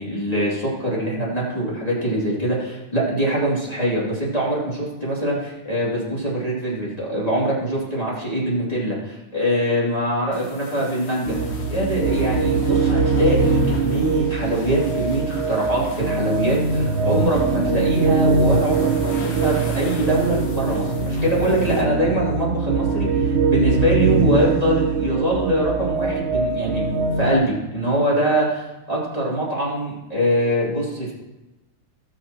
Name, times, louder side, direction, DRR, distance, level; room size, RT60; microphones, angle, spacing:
voice 1, 0.0-11.4 11.7-26.9 27.2-31.1, right 1 dB, 15° left, -6 dB, 2.8 m, -23 dB
sound 1, 10.3-21.8, left 3 dB, 80° left, 2.3 m, -37 dB
sound 2, 11.3-27.3, right 4 dB, 80° right, 0.6 m, -22 dB
18.5 x 6.8 x 3.0 m, 1.0 s
omnidirectional pair, 2.4 m